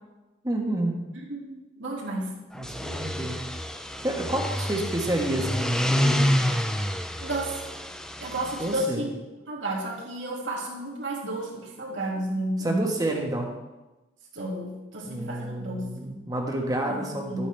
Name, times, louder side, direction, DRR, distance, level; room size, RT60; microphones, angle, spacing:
voice 1, 0.4-1.0 2.5-3.4 4.0-6.3 8.6-9.1 12.6-13.5 15.0-17.5, right 1 dB, 20° right, 1 dB, 1.3 m, -29 dB
voice 2, 1.3-2.3 7.2-7.6 8.2-9.1 9.5-12.9 14.3-16.2 16.9-17.5, right 1 dB, 70° right, -3 dB, 2.4 m, -32 dB
sound 1, 2.6-8.8, equal, 5° left, 0.5 m, -28 dB
12.5 x 8.5 x 3.4 m, 1.1 s
head